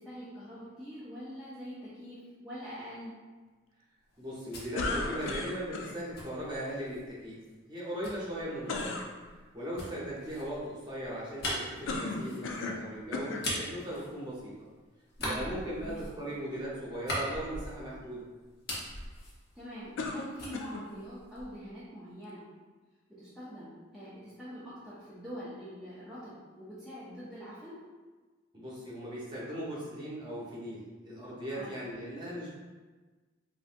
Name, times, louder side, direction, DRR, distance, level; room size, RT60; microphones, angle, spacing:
voice 1, 0.0-3.1 15.2-15.5 15.8-16.0 19.5-22.5 23.1-27.8 31.5-31.8, equal, ahead, -12 dB, 0.5 m, -44 dB
sound 1, 4.1-7.1 8.0-14.7 15.1-18.1 18.4-20.1 20.4-21.7, left 1 dB, 55° left, 0.8 m, -41 dB
voice 2, 4.2-7.4 7.7-9.0 9.5-14.5 15.3-18.3 28.5-32.5, right 1 dB, 25° right, -7 dB, 0.8 m, -38 dB
sound 2, 4.7-5.9 8.7-9.1 11.9-12.8 13.1-13.5 14.3-14.4 20.0-20.9, left 3 dB, 80° left, 0.4 m, -35 dB
3.4 x 2.6 x 2.5 m, 1.3 s
head